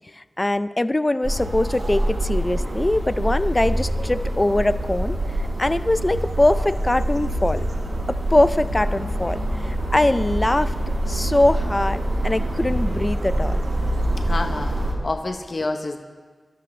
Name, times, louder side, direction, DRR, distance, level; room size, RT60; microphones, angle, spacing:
voice 1, 0.1-5.2 5.6-7.7 8.1-10.7 11.1-13.6, left 1 dB, 20° left, 13 dB, 0.4 m, -22 dB
sound 1, 1.2-14.9, right 1 dB, 60° right, 3.0 m, -25 dB
voice 2, 14.2-16.0, left 2 dB, 45° left, 4 dB, 0.9 m, -28 dB
25.0 x 12.5 x 3.2 m, 1.5 s
wide cardioid pair, 105°, 0 cm